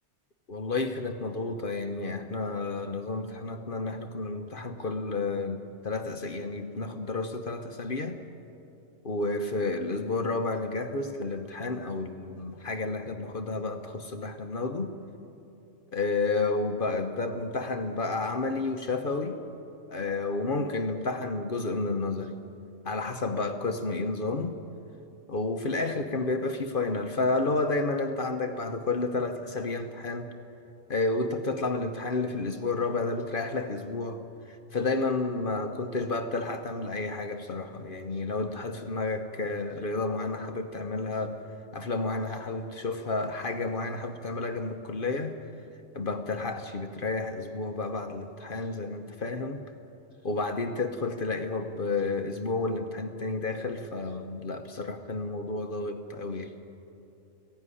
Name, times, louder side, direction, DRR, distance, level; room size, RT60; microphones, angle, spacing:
voice 1, 0.5-8.2 9.0-14.9 15.9-19.4 19.9-22.4 22.8-24.6 25.3-30.3 30.9-34.2 34.5-41.4 41.7-45.3 45.9-49.6 50.2-56.5, left 3 dB, 50° left, 6 dB, 1.1 m, -31 dB
18.0 x 15.0 x 9.8 m, 2.8 s
omnidirectional pair, 1.2 m